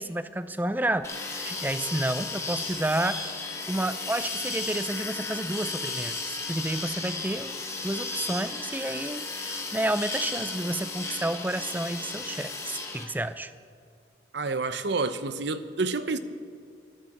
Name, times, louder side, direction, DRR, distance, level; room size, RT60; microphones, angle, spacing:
voice 1, 0.0-3.4 3.7-7.5 7.8-13.5, right 1 dB, 10° right, 0.5 m, -30 dB
sound 1, 1.0-13.0, left 3 dB, 15° left, 1.3 m, -34 dB
voice 2, 14.3-16.2, right 3 dB, 70° right, 0.7 m, -29 dB
13.5 x 12.5 x 7.2 m
head